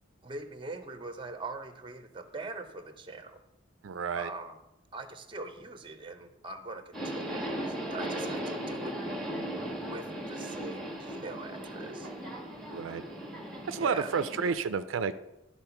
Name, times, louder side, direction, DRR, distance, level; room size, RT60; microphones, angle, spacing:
voice 1, 0.2-3.4 4.1-4.6 4.9-9.0 9.9-12.1 13.8-14.1, right 3 dB, 25° right, 9 dB, 0.6 m, -42 dB
voice 2, 3.8-4.3 12.7-13.0 13.7-15.2, right 5 dB, 80° right, 12 dB, 0.4 m, -30 dB
Subway metro underground, 6.9-14.5, right 1 dB, ahead, 1.2 m, -37 dB
11.5 x 4.2 x 5.8 m, 0.94 s
head